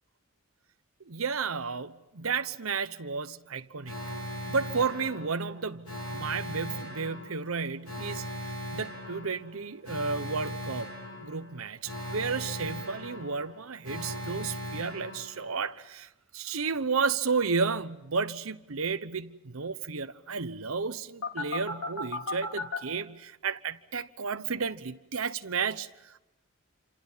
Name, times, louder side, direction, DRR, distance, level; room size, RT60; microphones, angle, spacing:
voice 1, 1.1-3.9 4.5-8.2 8.7-10.9 11.2-26.2, right 5 dB, 75° right, 1.0 m, -32 dB
Alarm, 3.8-15.8 21.2-22.8, left 1 dB, 80° left, 4.0 m, -38 dB
28.5 x 27.0 x 5.6 m
head